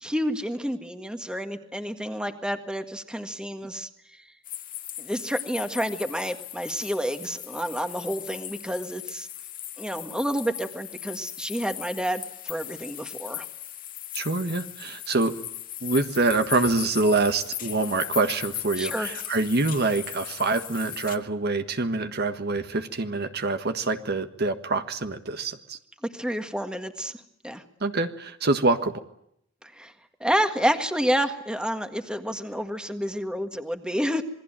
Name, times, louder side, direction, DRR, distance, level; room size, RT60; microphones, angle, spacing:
voice 1, 0.0-4.2 5.0-9.3 9.8-13.5 18.8-19.1 26.0-27.6 29.6-29.9 30.2-34.2, equal, 5° right, 7 dB, 1.8 m, -29 dB
sound 1, 4.4-21.2, left 12 dB, 45° left, 1.7 m, -38 dB
voice 2, 14.1-15.3 15.8-25.8 27.8-29.0, right 3 dB, 55° right, 8 dB, 1.6 m, -25 dB
27.5 x 21.5 x 9.0 m, 0.74 s
head